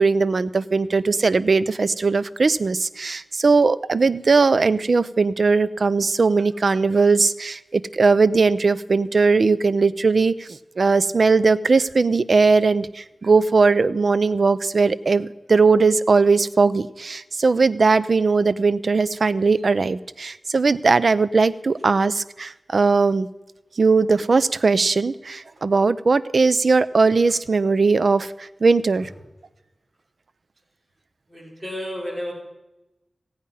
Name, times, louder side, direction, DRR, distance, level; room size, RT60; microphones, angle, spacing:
voice 1, 0.0-23.3 23.8-29.1, right 4 dB, 60° right, 15 dB, 0.5 m, -19 dB
voice 2, 31.3-32.3, equal, 25° right, -4 dB, 5.6 m, -32 dB
17.0 x 8.7 x 5.6 m, 1.0 s
wide cardioid pair, 100°, 0 cm